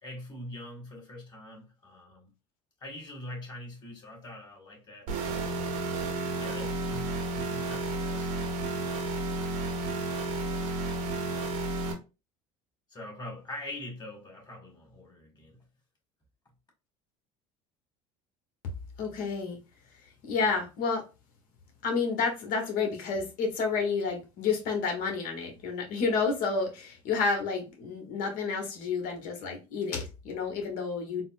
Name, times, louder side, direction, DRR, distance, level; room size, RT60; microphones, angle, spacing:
voice 1, 0.0-2.3 2.8-5.1 5.6-5.9 6.4-8.3 12.9-15.6, left 1 dB, 25° left, 1.8 m, -43 dB
sound 1, 5.1-11.9, right 2 dB, 85° right, 1.0 m, -32 dB
voice 2, 19.0-19.6 20.3-21.0 21.8-31.2, left 4 dB, 60° left, 1.1 m, -30 dB
3.9 x 2.0 x 2.5 m
supercardioid pair, 90°, 16 cm